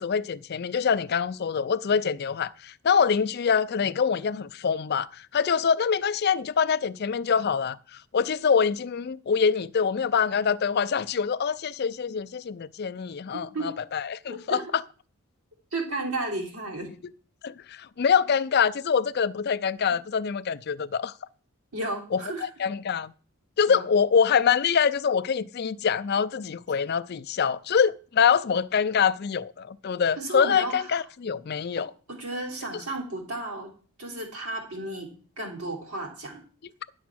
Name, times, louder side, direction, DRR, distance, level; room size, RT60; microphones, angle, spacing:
voice 1, 0.0-5.1 5.3-7.8 8.1-14.8 17.4-21.1 22.1-23.1 23.6-31.9, left 6 dB, 45° left, 0.4 m, -25 dB
voice 2, 14.3-14.7 15.7-16.9 21.7-22.5 23.7-23.8 30.2-31.0 31.8-33.7 34.0-35.1 35.4-36.4, right 2 dB, 80° right, 3.4 m, -33 dB
10.5 x 7.0 x 6.2 m
head